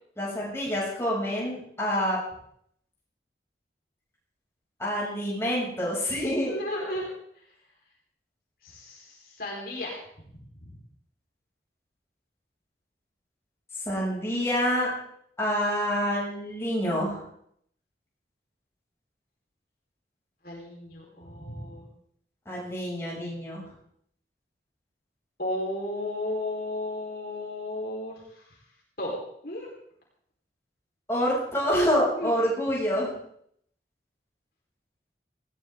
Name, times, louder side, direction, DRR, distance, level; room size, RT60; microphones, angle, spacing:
voice 1, 0.2-2.2 4.8-6.6 13.9-14.9 15.4-17.3 22.5-23.6 31.1-33.1, equal, 15° left, -6 dB, 6.9 m, -27 dB
voice 2, 6.4-7.1 8.6-10.0 10.7-10.8 20.4-21.9 25.4-28.4 29.0-29.2 29.4-29.7 32.1-32.3, left 1 dB, 55° left, -2 dB, 4.4 m, -34 dB
19.0 x 16.5 x 3.8 m, 0.69 s
head